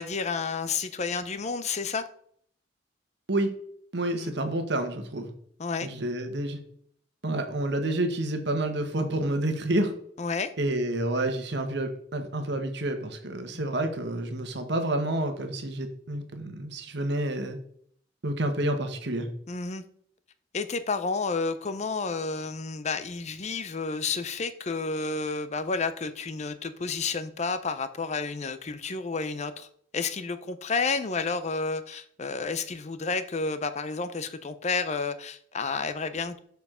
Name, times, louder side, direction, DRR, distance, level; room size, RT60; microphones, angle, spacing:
voice 1, 0.0-2.1 4.2-4.3 5.6-5.9 10.2-10.5 19.5-19.8 20.5-29.7 29.9-36.4, left 4 dB, 40° left, 12 dB, 0.6 m, -30 dB
voice 2, 3.9-5.3 5.8-6.6 7.2-9.9 10.6-17.6 18.2-19.3, right 1 dB, 65° right, 6 dB, 1.2 m, -29 dB
6.9 x 4.7 x 4.9 m, 0.63 s
head